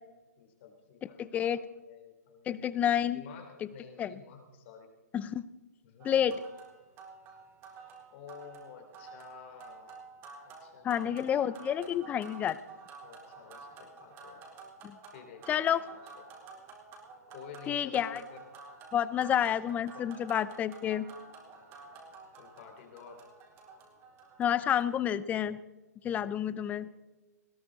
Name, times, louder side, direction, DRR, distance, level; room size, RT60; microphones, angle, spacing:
voice 1, 0.4-2.6 3.1-4.9 5.8-6.1 8.1-10.1 10.5-12.1 13.0-14.4 15.1-16.2 17.3-18.4 19.2-20.1 22.4-23.2 26.4-26.9, left 7 dB, 40° left, 4 dB, 3.6 m, -52 dB
voice 2, 1.2-1.6 2.5-3.2 4.0-4.1 5.1-5.5 6.0-6.4 10.8-12.6 14.8-15.0 15.5-15.8 17.7-18.2 18.9-21.1 24.4-25.6 26.0-26.9, left 9 dB, 15° left, 17 dB, 0.6 m, -29 dB
sound 1, 6.0-25.0, right 4 dB, 25° right, 4.0 m, -51 dB
20.0 x 17.0 x 4.1 m, 1.1 s
hypercardioid pair, 130°, 9 cm